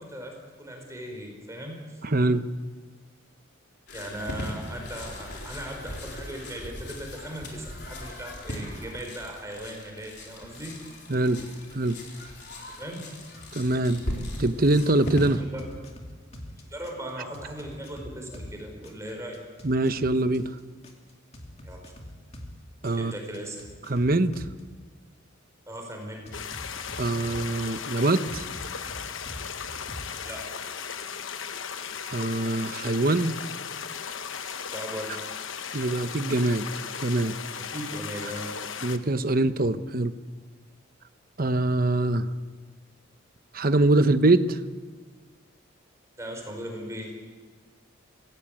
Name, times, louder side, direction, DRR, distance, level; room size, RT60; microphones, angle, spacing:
voice 1, 0.0-2.0 3.9-10.8 12.7-13.1 15.4-15.7 16.6-19.4 21.6-21.9 23.0-23.6 25.7-26.2 30.2-30.5 34.7-35.2 37.6-38.5 46.2-47.1, equal, 15° right, 1 dB, 4.6 m, -38 dB
voice 2, 2.0-2.4 11.1-11.4 11.7-12.0 13.5-14.1 14.4-15.4 19.6-20.5 22.8-23.1 23.9-24.4 27.0-28.4 32.1-33.4 35.7-36.7 37.0-37.3 38.8-40.1 41.4-42.3 43.5-44.6, right 2 dB, 45° right, 11 dB, 1.0 m, -23 dB
sound 1, 3.9-15.3, left 1 dB, 55° left, 4.2 m, -38 dB
sound 2, 13.3-14.5 14.8-18.5 18.8-22.5 22.8-24.6 26.3-27.8 28.3-30.2, left 1 dB, 30° left, 2.7 m, -43 dB
sound 3, 26.3-39.0, left 7 dB, 70° left, 1.1 m, -36 dB
24.5 x 17.0 x 8.7 m, 1.5 s
head